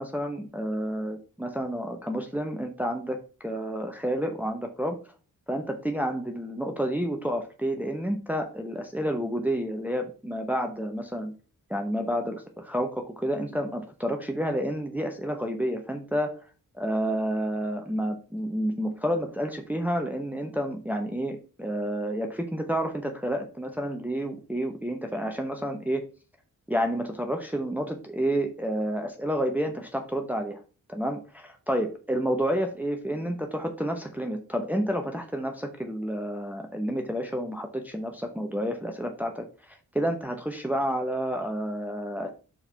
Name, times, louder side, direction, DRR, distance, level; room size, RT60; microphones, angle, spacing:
voice 1, 0.0-5.0 5.5-11.3 11.7-16.4 16.7-26.0 26.7-30.6 30.9-42.3, equal, 5° right, 4 dB, 0.8 m, -30 dB
4.8 x 4.5 x 5.6 m, 0.36 s
cardioid pair, 80°, 35 cm